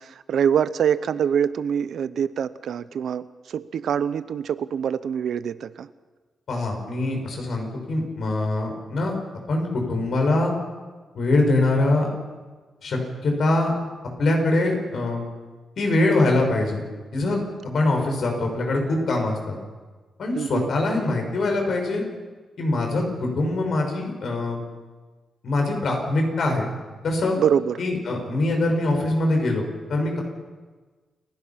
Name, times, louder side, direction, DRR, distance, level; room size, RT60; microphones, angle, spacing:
voice 1, 0.0-5.9 20.3-20.7 27.4-27.8, right 8 dB, 75° right, 15 dB, 0.7 m, -25 dB
voice 2, 6.5-9.1 9.5-10.5 11.1-12.1 12.8-13.7 14.2-15.3 15.8-16.8 17.1-19.6 20.2-22.0 22.6-24.6 25.4-26.6 27.0-27.3 27.8-29.6 29.9-30.2, left 2 dB, 65° left, 2 dB, 5.8 m, -23 dB
29.0 x 16.5 x 5.8 m, 1.3 s
cardioid pair, 120°, 0 cm